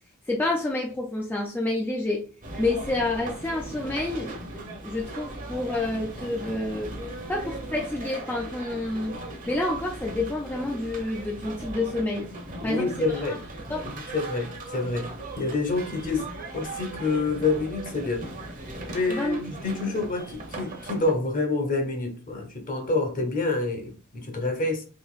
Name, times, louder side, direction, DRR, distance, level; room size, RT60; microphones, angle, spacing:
voice 1, 0.3-2.3 2.6-4.3 4.8-6.9 7.3-9.2 9.5-12.3 12.6-13.4 13.7-13.9 19.1-19.4, left 2 dB, 10° left, 0.4 m, -28 dB
sound 1, 2.4-21.1, right 2 dB, 40° right, 0.9 m, -38 dB
voice 2, 12.6-13.4 13.8-16.3 16.5-18.3 18.9-24.8, left 3 dB, 40° left, 0.9 m, -28 dB
3.9 x 2.9 x 2.4 m
head